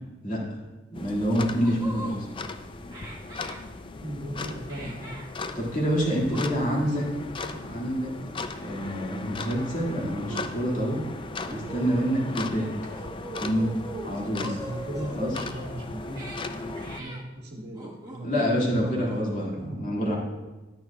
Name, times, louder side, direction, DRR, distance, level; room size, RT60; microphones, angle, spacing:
voice 1, 0.9-2.3 5.6-7.0 7.5-8.1 8.5-11.0 11.5-12.7 13.4-13.8 14.0-14.5 15.1-15.3 18.2-20.1, equal, 45° left, -4 dB, 2.2 m, -27 dB
sound 1, 0.9-17.0, left 3 dB, 25° left, 0.4 m, -38 dB
sound 2, 1.6-2.2 2.9-3.6 4.7-5.3 6.0-6.5 6.8-7.0 7.8-8.4 8.7-8.9 9.5-10.4 11.0-12.1 12.9-14.1 14.4-15.2 16.0-16.4 16.8-17.2 17.7-18.5 18.8-19.4, right 2 dB, 20° right, 1.4 m, -41 dB
voice 2, 3.9-5.1 6.1-6.5 6.8-7.0 14.3-18.8, right 1 dB, 60° right, 0 dB, 1.5 m, -38 dB
10.5 x 9.2 x 2.3 m, 1.1 s
head